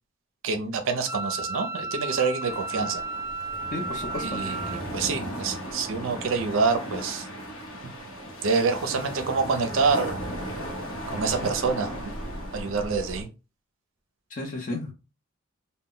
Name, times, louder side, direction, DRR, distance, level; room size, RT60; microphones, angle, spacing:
voice 1, 0.4-3.0 4.2-7.3 8.4-10.1 11.1-11.9 12.5-13.3, right 4 dB, 70° right, 0.5 m, -26 dB
Wind instrument woodwind instrument, 1.1-4.8, right 3 dB, 10° right, 0.7 m, -33 dB
sound 1, 2.5-13.2, equal, 80° left, 0.8 m, -36 dB
voice 2, 3.7-4.4 14.3-14.9, left 2 dB, 40° left, 0.6 m, -33 dB
2.1 x 2.1 x 3.7 m
head